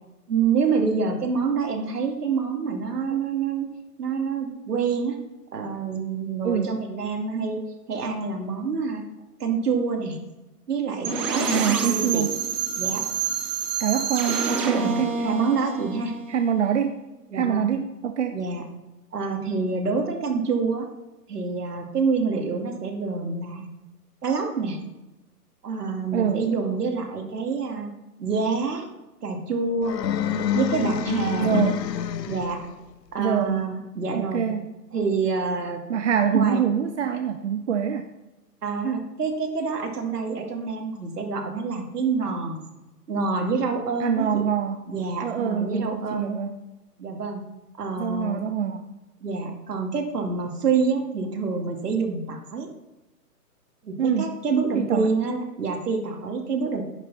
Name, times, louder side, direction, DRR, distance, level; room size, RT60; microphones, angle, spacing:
voice 1, 0.3-3.7 4.0-5.2 5.5-7.6 7.9-9.0 9.4-10.2 10.7-12.3 12.8-13.0 14.8-16.1 17.3-17.7 18.3-18.6 19.1-20.9 21.3-23.7 24.2-24.8 25.6-27.9 28.2-28.9 29.2-30.0 30.5-31.6 32.2-32.6 33.1-34.5 34.9-35.8 36.3-36.7 38.6-42.7 43.1-44.4 44.9-46.3 47.0-47.4 47.8-48.4 49.2-52.7 53.8-56.8, right 5 dB, 70° right, 3 dB, 2.4 m, -27 dB
sound 1, 11.0-16.8, right 5 dB, 15° right, 0.9 m, -27 dB
voice 2, 11.5-12.3 13.8-15.2 16.3-17.0 17.3-18.4 26.1-26.4 31.4-31.8 33.2-33.6 34.1-34.7 35.9-38.1 44.0-44.8 45.2-46.5 48.0-48.9 54.0-54.3 54.7-55.1, right 8 dB, 45° right, 7 dB, 0.7 m, -25 dB
sound 2, 29.8-32.7, left 8 dB, 80° left, 0.7 m, -27 dB
10.5 x 7.9 x 4.2 m, 1.0 s
hypercardioid pair, 145°, 48 cm